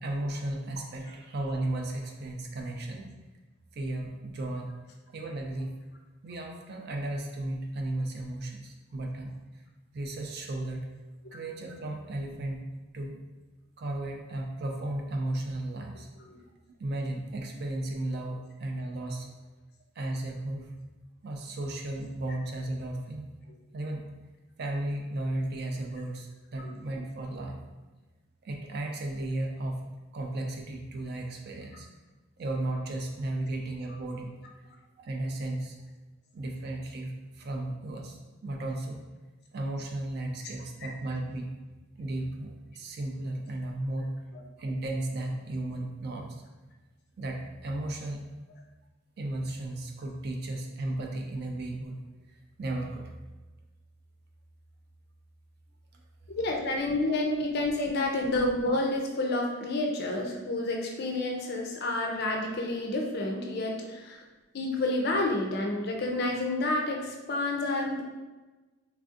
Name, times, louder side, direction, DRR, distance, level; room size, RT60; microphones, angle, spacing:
voice 1, 0.0-3.1 3.7-4.7 5.1-5.7 6.2-9.6 9.9-10.9 11.3-12.6 12.9-13.2 13.8-16.1 16.8-19.3 20.0-20.7 21.2-23.3 23.7-24.0 24.6-27.6 28.4-29.8 30.1-31.9 32.4-34.3 35.0-35.8 36.3-39.0 39.5-41.5 42.0-44.1 44.6-46.4 47.2-48.2 49.2-52.0 52.3-53.1, right 1 dB, 50° right, 2 dB, 0.4 m, -34 dB
voice 2, 56.3-64.2 64.5-68.0, left 2 dB, 45° left, 1 dB, 0.4 m, -29 dB
3.2 x 2.6 x 2.4 m, 1.2 s
head